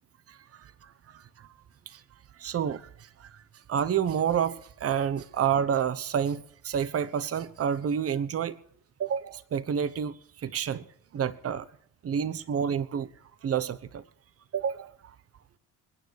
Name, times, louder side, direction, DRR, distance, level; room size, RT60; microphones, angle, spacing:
voice 1, 0.3-1.5 1.9-2.0 2.4-3.4 3.7-8.6 9.0-10.9 11.1-11.7 12.0-13.1 13.4-14.0 14.5-14.9, right 8 dB, 40° right, 1.1 m, -29 dB
28.0 x 9.6 x 4.8 m
cardioid pair, 105°, 36 cm